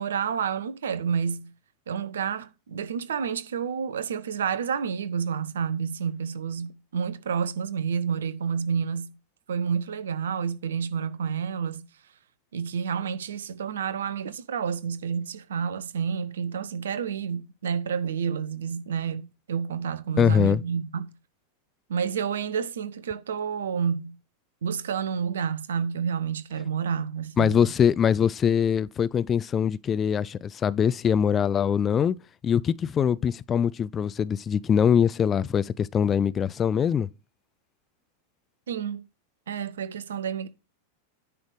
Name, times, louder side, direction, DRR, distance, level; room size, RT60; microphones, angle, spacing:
voice 1, 0.0-1.5 1.9-9.2 9.5-11.8 12.5-21.1 21.9-24.1 24.6-27.7 38.7-39.0 39.5-40.5, right 7 dB, 65° right, 0.7 m, -29 dB
voice 2, 20.2-20.6 27.4-32.2 32.4-37.1, left 8 dB, 25° left, 0.3 m, -23 dB
9.9 x 3.5 x 6.4 m
figure-of-eight pair, 90°, 0 cm